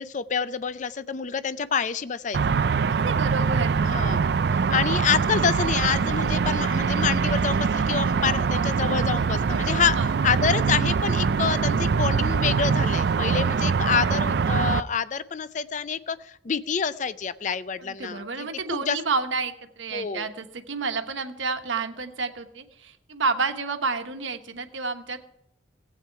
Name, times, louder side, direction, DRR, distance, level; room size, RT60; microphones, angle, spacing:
voice 1, 0.0-2.6 3.8-4.2 4.7-10.0 10.2-19.0 19.9-20.3, left 6 dB, 40° left, 15 dB, 0.4 m, -27 dB
sound 1, 2.3-14.8, right 5 dB, 55° right, 0.4 m, -23 dB
voice 2, 2.9-3.8 9.3-10.1 13.3-13.8 17.8-25.2, right 4 dB, 75° right, 8 dB, 1.2 m, -30 dB
16.0 x 8.5 x 4.6 m, 0.80 s
head